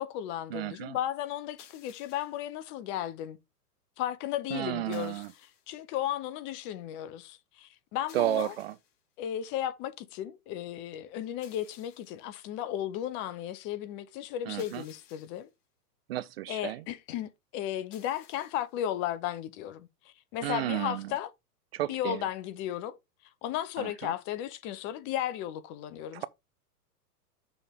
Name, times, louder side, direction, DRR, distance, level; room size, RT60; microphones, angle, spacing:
voice 1, 0.0-3.4 4.0-5.2 5.7-8.5 9.2-15.5 16.5-21.3 21.9-23.0 23.4-26.3, left 11 dB, 25° left, 0.5 m, -35 dB
voice 2, 0.5-1.0 4.5-5.3 8.1-8.7 14.5-14.8 16.1-16.8 20.4-21.1 21.7-22.2 23.8-24.1 26.1-26.3, right 14 dB, 40° right, 0.4 m, -32 dB
sound 1, 1.6-2.5 4.9-5.7 8.1-9.0 11.4-12.2 14.6-15.5 17.9-18.7, left 8 dB, 50° left, 4.1 m, -58 dB
6.9 x 3.3 x 5.3 m
hypercardioid pair, 110°, 48 cm